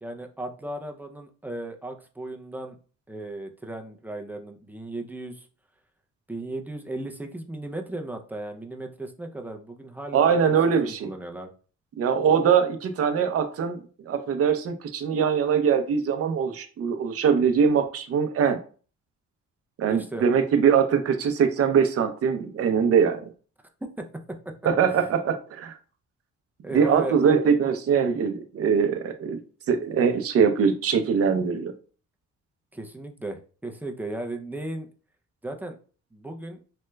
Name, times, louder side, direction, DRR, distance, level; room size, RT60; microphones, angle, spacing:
voice 1, 0.0-2.8 3.1-5.5 6.3-10.6 10.8-11.5 19.9-20.2 24.9-25.1 26.6-27.2 32.7-34.9 35.4-35.8 36.1-36.6, right 2 dB, 5° right, 3 dB, 0.4 m, -36 dB
voice 2, 10.1-11.1 12.0-13.8 14.1-18.6 19.8-23.2 24.6-25.7 26.7-29.4 29.7-31.7, right 6 dB, 50° right, 7 dB, 0.6 m, -22 dB
3.2 x 2.8 x 2.2 m, 0.39 s
cardioid pair, 90°, 30 cm